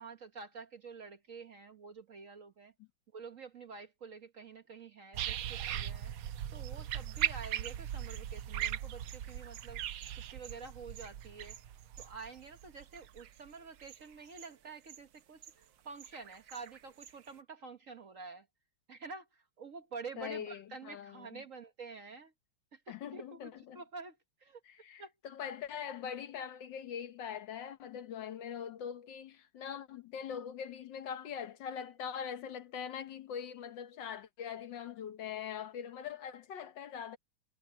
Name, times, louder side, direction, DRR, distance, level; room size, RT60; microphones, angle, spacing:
voice 1, 0.0-2.7 3.1-6.1 6.5-9.8 10.3-11.6 12.0-18.5 18.9-22.3 22.7-24.2 24.4-24.6 25.0-25.1, right 4 dB, 45° right, 1.2 m, -48 dB
sound 1, 5.1-13.3 13.8-13.9, right 11 dB, 80° right, 1.6 m, -38 dB
sound 2, 7.0-17.4, right 9 dB, 65° right, 1.7 m, -57 dB
voice 2, 20.2-21.4 22.9-23.8 24.6-37.2, left 8 dB, 65° left, 1.6 m, -42 dB
omnidirectional pair, 2.2 m